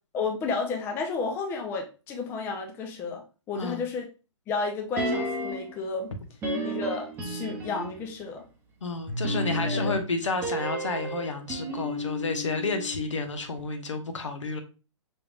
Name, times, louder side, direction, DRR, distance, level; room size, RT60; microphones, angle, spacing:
voice 1, 0.1-4.1 4.5-6.1 6.6-8.5 9.5-9.9, left 4 dB, 15° left, 0.5 m, -32 dB
sound 1, 5.0-5.8 6.4-8.0 9.1-13.3 13.6-13.7, equal, 10° right, 0.8 m, -32 dB
voice 2, 8.8-14.6, left 3 dB, 65° left, 1.0 m, -31 dB
5.4 x 3.3 x 2.4 m
figure-of-eight pair, 120°, 16 cm